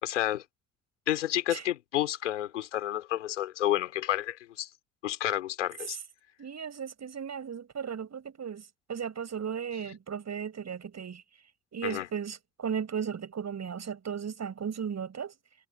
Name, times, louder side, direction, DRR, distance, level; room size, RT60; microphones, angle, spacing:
voice 1, 0.0-0.4 1.1-4.7 5.0-6.0 11.8-12.1, left 12 dB, 85° left, 3.9 m, -30 dB
voice 2, 6.4-11.2 11.7-15.3, right 7 dB, 50° right, 7.8 m, -36 dB
figure-of-eight pair, 40°, 35 cm